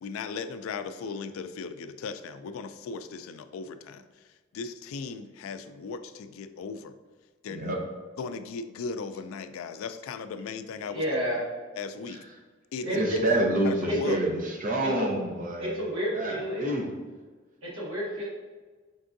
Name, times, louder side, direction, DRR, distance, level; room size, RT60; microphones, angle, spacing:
voice 1, 0.0-4.1 4.5-6.9 7.4-7.7 8.2-11.0 11.8-12.2 12.7-12.9 13.6-14.2, left 5 dB, 85° left, 10 dB, 0.3 m, -37 dB
voice 2, 10.8-11.4 12.8-13.2 13.8-14.2 14.8-15.2 15.6-16.7 17.6-18.2, equal, 75° right, -6 dB, 1.3 m, -30 dB
voice 3, 12.8-15.8 16.1-16.9, right 1 dB, 40° right, 1 dB, 0.7 m, -28 dB
5.3 x 3.5 x 2.6 m, 1.4 s
head